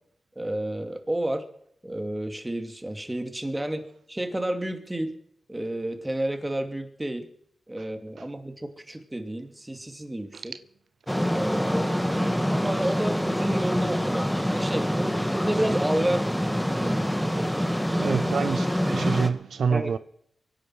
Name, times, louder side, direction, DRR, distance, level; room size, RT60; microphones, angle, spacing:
voice 1, 0.4-1.4 1.8-5.1 5.5-7.3 7.7-10.5 11.3-12.2 12.5-16.3 16.6-18.2 19.7-20.0, right 1 dB, 15° right, 2.5 m, -31 dB
sound 1, 11.1-19.3, equal, 5° left, 1.5 m, -26 dB
voice 2, 18.0-20.0, right 6 dB, 80° right, 0.5 m, -27 dB
24.0 x 10.5 x 4.8 m
cardioid pair, 65°, 0 cm